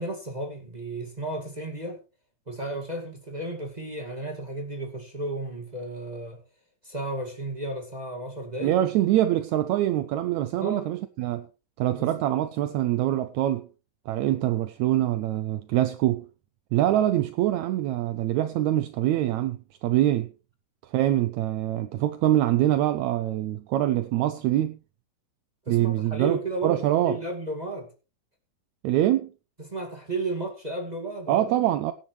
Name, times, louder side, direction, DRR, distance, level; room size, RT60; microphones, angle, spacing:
voice 1, 0.0-2.0 2.5-6.4 6.8-8.8 10.6-10.9 11.9-12.1 25.6-27.9 29.6-31.5, right 2 dB, 15° right, 1.5 m, -33 dB
voice 2, 8.6-11.5 11.8-13.7 14.1-16.2 16.7-20.3 20.9-24.8 25.7-27.2 28.8-29.3 31.3-31.9, right 13 dB, 80° right, 1.7 m, -24 dB
17.5 x 10.5 x 3.2 m
omnidirectional pair, 4.1 m